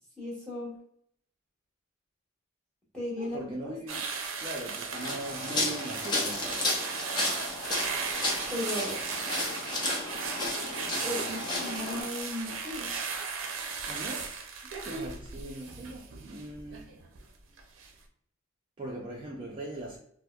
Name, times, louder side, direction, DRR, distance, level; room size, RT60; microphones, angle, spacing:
voice 1, 0.2-0.7 2.9-3.4 3.9-4.0 8.5-9.0 10.4-10.5 11.0-12.9, left 1 dB, 5° left, -5 dB, 1.2 m, -36 dB
voice 2, 3.2-4.0 4.4-6.7 13.9-14.4 14.6-16.9 18.8-20.0, right 1 dB, 25° right, -3 dB, 0.4 m, -40 dB
sound 1, 3.9-17.2 17.6-17.9, right 5 dB, 75° right, 0.5 m, -36 dB
sound 2, 4.9-12.0, left 2 dB, 20° left, 0.6 m, -33 dB
4.5 x 2.1 x 2.3 m, 0.69 s
head